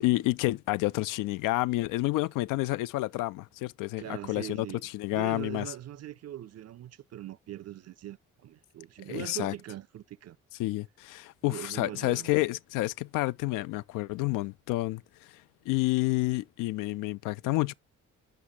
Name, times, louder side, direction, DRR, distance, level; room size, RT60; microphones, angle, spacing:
voice 1, 0.0-5.7 9.1-9.5 10.6-17.7, left 19 dB, 65° left, 0.4 m, -29 dB
voice 2, 4.0-4.8 5.1-10.4 11.5-12.3, right 12 dB, 45° right, 0.6 m, -41 dB
9.0 x 6.3 x 2.7 m
hypercardioid pair, 40°, 36 cm